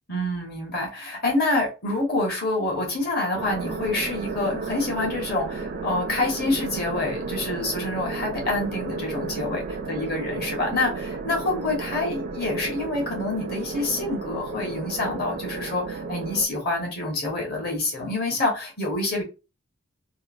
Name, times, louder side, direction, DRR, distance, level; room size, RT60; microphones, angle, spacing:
voice 1, 0.1-9.6 9.9-19.2, left 2 dB, 45° left, 1.1 m, -27 dB
sound 1, 3.3-16.5, right 4 dB, 40° right, 0.3 m, -33 dB
3.0 x 2.0 x 2.4 m
head